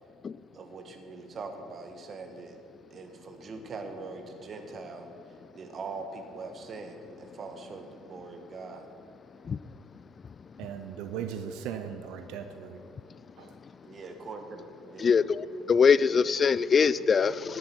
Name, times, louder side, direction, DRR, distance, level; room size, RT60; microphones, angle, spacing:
voice 1, 0.5-2.6 2.9-5.1 5.5-8.8 13.8-15.1, right 3 dB, 40° right, 6 dB, 1.5 m, -42 dB
voice 2, 10.6-12.8 13.4-13.5, right 8 dB, 65° right, 8 dB, 0.6 m, -38 dB
voice 3, 15.0-17.6, left 6 dB, 35° left, 17 dB, 0.3 m, -23 dB
11.0 x 11.0 x 4.5 m, 2.4 s
hypercardioid pair, 55°, 0 cm